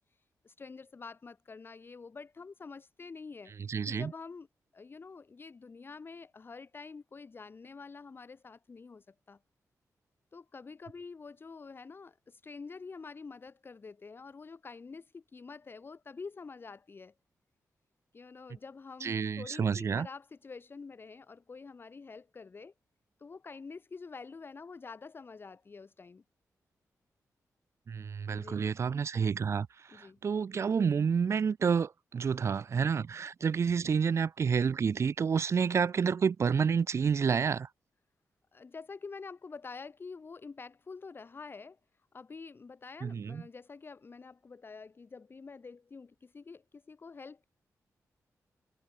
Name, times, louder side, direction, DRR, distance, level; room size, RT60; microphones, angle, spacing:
voice 1, 0.0-4.5 4.7-9.4 10.3-17.1 18.1-22.7 23.2-26.2 28.3-28.6 29.9-30.2 38.5-41.8 42.1-47.5, left 4 dB, 35° left, 0.8 m, -47 dB
voice 2, 3.6-4.1 19.0-20.1 27.9-37.7 43.0-43.4, right 6 dB, 50° right, 0.4 m, -29 dB
cardioid pair, 95°, 6 cm